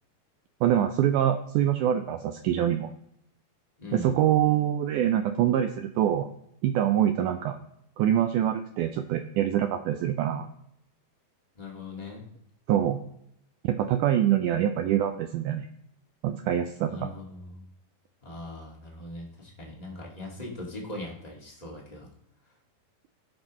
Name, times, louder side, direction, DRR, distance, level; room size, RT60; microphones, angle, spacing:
voice 1, 0.6-2.9 3.9-6.3 6.6-7.6 8.0-10.5 12.7-13.0 13.6-15.7 16.2-17.1, right 11 dB, 85° right, 7 dB, 1.8 m, -25 dB
voice 2, 3.8-4.1 11.5-12.2 16.9-17.6 18.2-22.1, left 2 dB, 20° left, -3 dB, 1.0 m, -40 dB
15.5 x 5.6 x 3.0 m, 0.76 s
omnidirectional pair, 4.1 m